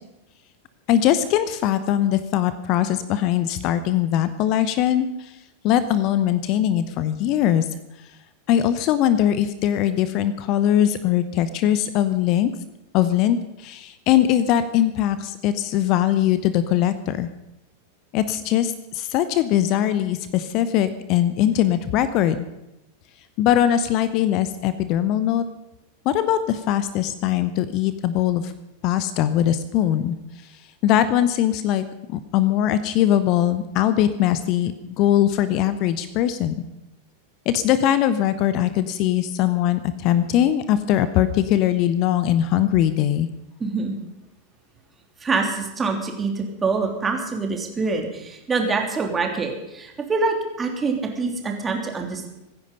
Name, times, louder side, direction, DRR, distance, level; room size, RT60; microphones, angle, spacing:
voice 1, 0.9-5.4 5.6-7.7 8.5-12.5 12.9-17.3 18.1-22.5 23.4-25.4 26.0-28.5 28.8-30.2 30.8-36.5 37.5-43.3, left 11 dB, 40° left, 13 dB, 0.9 m, -21 dB
voice 2, 43.6-44.0 45.2-52.3, right 4 dB, 15° right, 2 dB, 3.3 m, -25 dB
24.5 x 10.5 x 5.5 m, 0.93 s
figure-of-eight pair, 90°, 0 cm